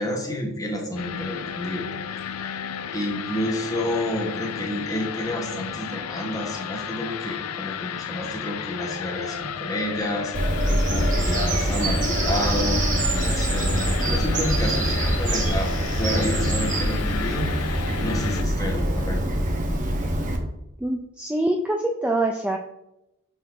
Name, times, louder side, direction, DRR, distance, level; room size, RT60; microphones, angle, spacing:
voice 1, 0.0-1.9 2.3-2.5 2.9-10.3 10.9-15.7 16.0-19.2, left 1 dB, 15° left, 0 dB, 1.3 m, -30 dB
sound 1, 1.0-18.4, left 8 dB, 80° left, 0.4 m, -33 dB
Bird vocalization bird call bird song, 10.3-20.4, right 1 dB, 35° right, 0.9 m, -24 dB
voice 2, 20.8-22.6, right 1 dB, 5° right, 2 dB, 0.3 m, -24 dB
6.3 x 5.7 x 3.2 m, 0.86 s
head